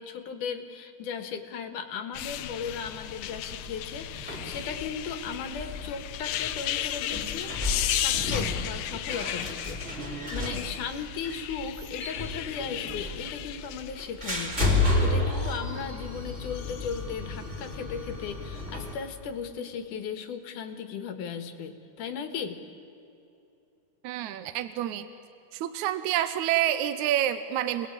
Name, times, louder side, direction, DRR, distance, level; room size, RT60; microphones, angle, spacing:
voice 1, 0.0-22.6, left 6 dB, 65° left, 7 dB, 2.9 m, -37 dB
sound 1, 2.1-15.6 16.4-17.0 17.5-17.7, left 12 dB, 90° left, 2.6 m, -35 dB
sound 2, 3.2-18.9, left 2 dB, 20° right, 4.0 m, -32 dB
voice 2, 24.0-25.1 25.5-27.9, right 12 dB, 70° right, 11 dB, 1.9 m, -28 dB
28.5 x 20.0 x 8.8 m, 2.8 s
omnidirectional pair, 4.1 m